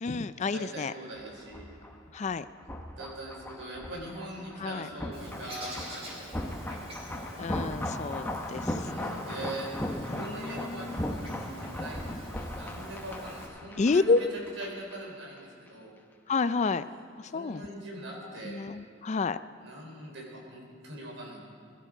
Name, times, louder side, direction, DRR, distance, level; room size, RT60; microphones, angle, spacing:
voice 1, 0.0-0.9 2.1-2.4 4.6-4.9 7.4-9.2 10.1-11.4 13.8-14.2 16.3-16.8 17.2-17.7 18.5-19.4, left 4 dB, 35° left, 13 dB, 0.4 m, -30 dB
voice 2, 0.5-1.6 3.0-6.4 6.7-6.9 8.6-9.7 10.0-14.3 14.6-15.9 17.3-18.6 19.6-21.4, right 1 dB, 80° right, -1 dB, 4.2 m, -42 dB
sound 1, 1.2-15.0 15.2-15.4, left 1 dB, 10° left, 0.9 m, -38 dB
Bird, 5.1-13.5, equal, 30° right, 3.7 m, -46 dB
21.5 x 12.5 x 5.0 m, 2.4 s
head